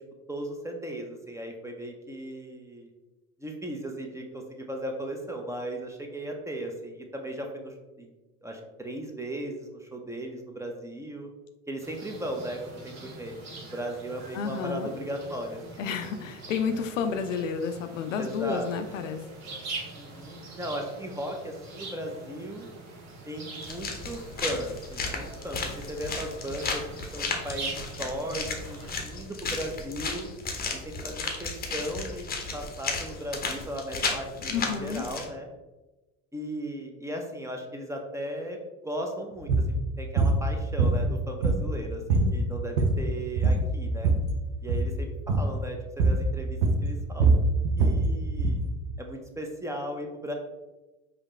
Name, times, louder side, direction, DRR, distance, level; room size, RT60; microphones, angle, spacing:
voice 1, 0.3-2.9 3.4-8.1 8.4-11.3 11.7-13.4 13.6-16.0 18.2-18.7 20.0-22.7 23.3-26.9 27.1-30.3 30.7-35.5 36.3-38.6 38.8-44.1 44.6-47.4 47.8-48.6 49.0-50.3, right 1 dB, 10° right, 2 dB, 0.7 m, -37 dB
sound 1, 11.8-28.9, right 3 dB, 45° right, 1.2 m, -43 dB
voice 2, 14.3-14.9 15.8-19.2 34.5-35.1 42.2-42.4, left 6 dB, 80° left, 8 dB, 0.5 m, -31 dB
sound 2, 23.6-35.2, left 4 dB, 25° left, 0.8 m, -34 dB
sound 3, 39.4-39.7 40.2-40.4 40.8-41.8 42.1-42.3 42.6-43.1 43.4-44.3 44.6-44.9 45.3-45.5 46.0-46.3 46.6-48.6, right 3 dB, 70° right, 0.8 m, -23 dB
4.9 x 2.8 x 3.1 m, 1.1 s
hypercardioid pair, 65°, 37 cm